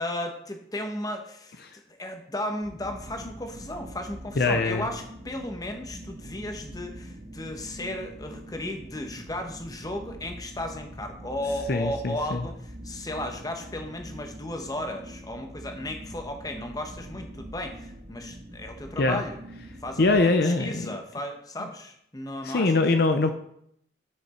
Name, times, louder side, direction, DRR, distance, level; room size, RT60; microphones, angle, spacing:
voice 1, 0.0-1.6 1.9-19.4 19.8-22.7, left 1 dB, 20° left, 4 dB, 1.0 m, -35 dB
sound 1, 2.6-20.2, equal, 70° right, 2.3 m, -43 dB
voice 2, 4.4-4.9 11.7-12.4 19.0-19.2 20.0-20.9 22.4-23.3, left 3 dB, 55° left, 7 dB, 0.6 m, -23 dB
9.7 x 5.9 x 4.3 m, 0.70 s
head